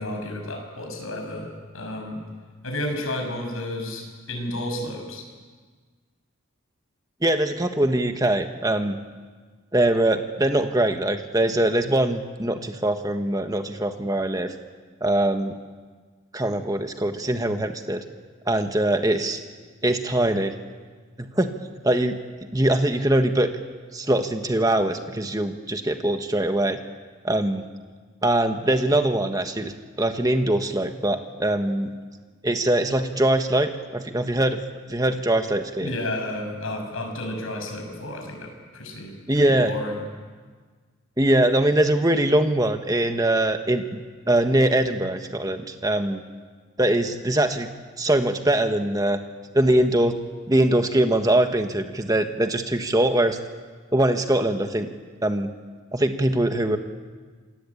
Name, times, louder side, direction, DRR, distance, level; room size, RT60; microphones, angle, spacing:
voice 1, 0.0-2.2 2.6-5.2 35.8-40.0, left 1 dB, 80° left, 2 dB, 7.3 m, -32 dB
voice 2, 7.2-9.0 9.7-14.5 15.0-15.5 16.3-18.0 18.4-19.4 19.8-20.5 21.2-21.5 21.8-22.2 22.5-23.5 23.9-26.8 27.2-27.6 28.2-31.9 32.4-34.6 34.9-35.9 39.3-39.7 41.2-44.0 44.3-46.2 46.8-47.7 48.0-49.2 49.5-50.1 50.5-53.4 53.9-54.9 55.2-55.5 55.9-56.8, right 1 dB, 15° right, 6 dB, 1.4 m, -22 dB
27.5 x 20.5 x 8.7 m, 1.5 s
head